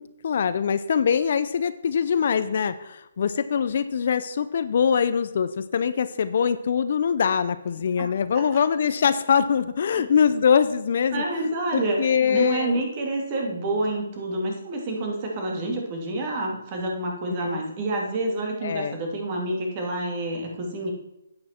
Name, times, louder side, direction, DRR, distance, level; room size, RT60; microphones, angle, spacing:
voice 1, 0.0-11.2 11.7-12.8 17.3-17.6 18.6-19.0, left 7 dB, 55° left, 13 dB, 0.6 m, -23 dB
voice 2, 11.1-20.9, right 2 dB, 30° right, 1 dB, 2.4 m, -28 dB
10.5 x 8.8 x 4.4 m, 0.89 s
hypercardioid pair, 155°, 0 cm